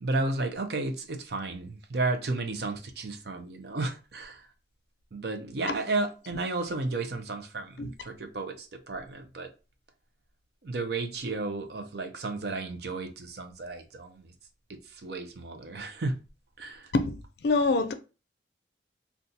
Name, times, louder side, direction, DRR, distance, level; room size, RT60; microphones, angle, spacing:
voice 1, 0.0-4.5 5.1-9.5 10.6-14.3 14.7-16.2 16.6-16.9, right 3 dB, 65° right, 0.5 m, -33 dB
voice 2, 17.4-17.9, left 3 dB, 65° left, 0.4 m, -24 dB
3.8 x 2.3 x 2.7 m
head